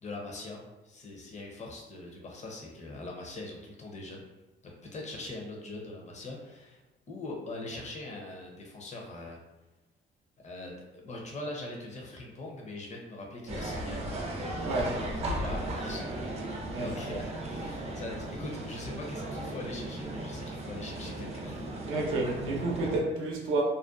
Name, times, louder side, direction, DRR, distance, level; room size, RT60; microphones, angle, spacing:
voice 1, 0.0-4.2 4.6-6.8 7.1-9.4 10.4-16.1 16.8-21.7, left 2 dB, 35° left, 0 dB, 0.6 m, -42 dB
sound 1, 13.5-23.0, right 1 dB, 30° right, 0.5 m, -36 dB
voice 2, 14.6-15.0 16.7-17.2 21.9-23.6, right 2 dB, 85° right, -1 dB, 0.6 m, -30 dB
2.5 x 2.2 x 2.4 m, 1.1 s
cardioid pair, 90°, 20 cm